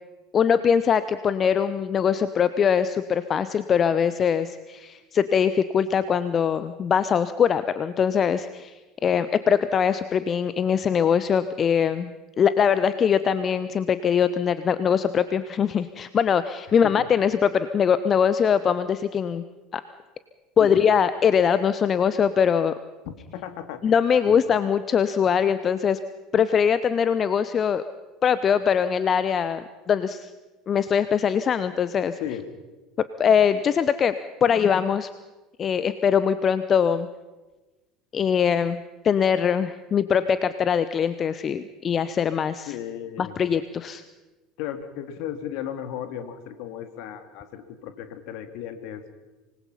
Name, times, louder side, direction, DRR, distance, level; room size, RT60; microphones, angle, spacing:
voice 1, 0.3-19.4 19.7-19.8 20.6-22.7 23.8-26.0 26.3-27.8 28.2-30.3 30.7-32.2 33.0-34.1 34.4-35.1 35.6-37.1 38.1-42.8 43.2-44.0, left 7 dB, 35° left, 14 dB, 0.8 m, -22 dB
voice 2, 23.3-24.0 24.3-24.4 32.2-32.4 42.7-43.4 44.6-49.0, left 10 dB, 60° left, 9 dB, 2.1 m, -35 dB
25.5 x 20.5 x 5.7 m, 1.2 s
figure-of-eight pair, 70°, 0 cm